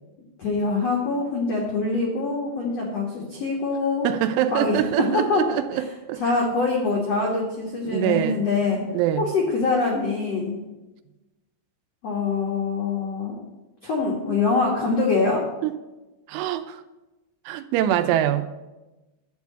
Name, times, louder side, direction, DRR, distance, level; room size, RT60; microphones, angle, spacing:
voice 1, 0.4-4.1 4.5-5.4 5.7-5.8 6.2-8.8 9.2-10.6 12.0-13.3 13.8-15.4, left 3 dB, 80° left, 1.4 m, -24 dB
voice 2, 4.0-5.8 6.1-6.2 7.8-8.4 8.9-9.2 15.6-15.7 16.3-16.8 17.5-18.5, right 11 dB, 85° right, 3.1 m, -24 dB
11.5 x 4.7 x 8.2 m
omnidirectional pair, 5.5 m